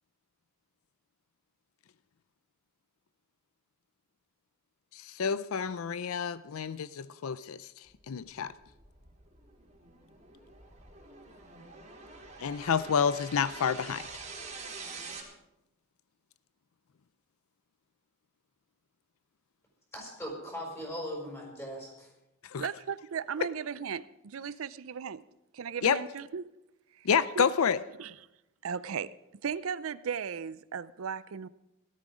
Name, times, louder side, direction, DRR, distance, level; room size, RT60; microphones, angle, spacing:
voice 1, 4.9-7.7 8.1-8.5 12.4-14.1 22.5-22.7 25.8-26.0 27.0-27.8, left 7 dB, 85° left, 0.5 m, -29 dB
sound 1, 8.2-15.2, right 4 dB, 35° right, 3.3 m, -46 dB
voice 2, 19.9-22.1, equal, 15° left, 5.3 m, -39 dB
voice 3, 22.6-25.2 25.5-26.5 27.0-27.1 27.4-27.5 28.0-28.1 28.6-29.1 29.4-31.5, right 7 dB, 80° right, 0.5 m, -36 dB
17.5 x 12.5 x 5.0 m
head